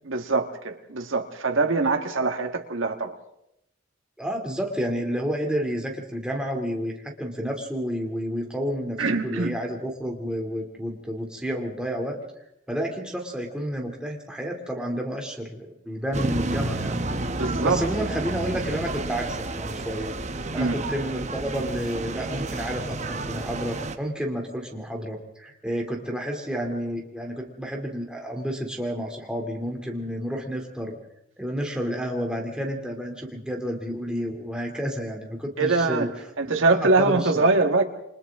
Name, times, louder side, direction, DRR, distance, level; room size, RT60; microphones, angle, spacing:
voice 1, 0.0-3.2 9.0-9.5 17.3-17.8 20.5-20.8 35.6-36.1 36.4-37.8, right 3 dB, 80° right, 4 dB, 1.6 m, -23 dB
voice 2, 4.2-12.2 12.7-17.0 17.4-20.2 20.5-31.0 31.4-36.1 36.4-36.5 36.8-37.4, equal, 5° right, 0 dB, 2.7 m, -30 dB
sound 1, 16.1-24.0, right 2 dB, 35° right, 1.0 m, -30 dB
28.5 x 25.0 x 3.6 m, 0.82 s
head